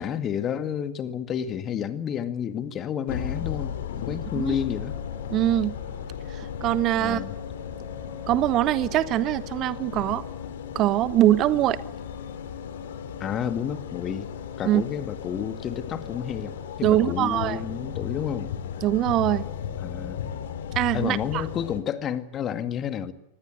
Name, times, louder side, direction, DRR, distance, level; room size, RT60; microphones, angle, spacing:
voice 1, 0.0-5.0 7.0-7.3 13.2-14.3 14.6-18.5 19.8-20.3 20.9-23.1, left 8 dB, 30° left, 10 dB, 2.0 m, -30 dB
sound 1, 3.1-21.8, left 8 dB, 60° left, 2.8 m, -35 dB
voice 2, 5.3-5.7 6.3-7.2 8.3-10.2 10.7-11.8 14.6-14.8 16.8-17.6 18.8-19.5 20.7-21.4, right 13 dB, 35° right, 17 dB, 1.0 m, -23 dB
25.0 x 21.0 x 8.3 m, 0.84 s
figure-of-eight pair, 90°, 0 cm